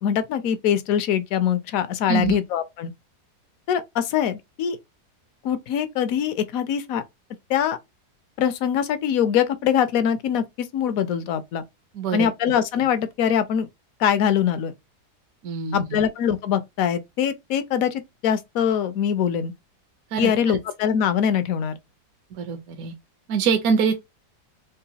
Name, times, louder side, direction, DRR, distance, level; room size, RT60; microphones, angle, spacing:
voice 1, 0.0-2.9 3.7-4.8 5.4-7.0 7.5-7.8 8.4-10.4 10.7-11.6 12.1-13.7 14.0-14.7 15.7-19.5 20.2-21.8, left 8 dB, 70° left, 0.9 m, -23 dB
voice 2, 11.9-12.3 15.4-16.0 20.1-20.3 22.4-22.9 23.3-23.9, right 6 dB, 70° right, 1.0 m, -24 dB
3.8 x 2.4 x 2.7 m
omnidirectional pair, 1.7 m